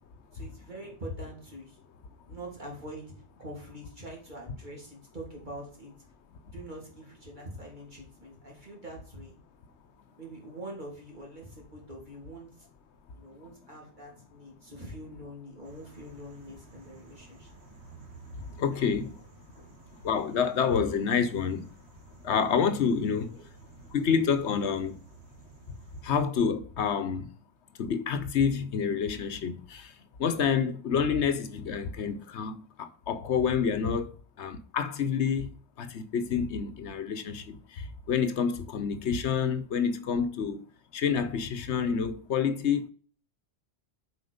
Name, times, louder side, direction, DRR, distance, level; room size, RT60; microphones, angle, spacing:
voice 1, 0.3-1.8 2.3-5.9 6.5-9.4 10.2-12.5 13.1-17.5 18.4-18.9 19.5-19.7 23.3-23.4, right 1 dB, 45° right, 3.3 m, -44 dB
sound 1, 15.6-26.3, right 4 dB, 70° right, 1.9 m, -52 dB
voice 2, 18.4-19.2 20.0-21.7 22.2-23.4 23.8-25.0 26.0-27.3 27.8-29.9 30.2-34.1 34.4-35.5 35.8-40.6 40.9-42.9, left 6 dB, 80° left, 1.1 m, -28 dB
8.0 x 4.9 x 5.0 m
omnidirectional pair, 1.1 m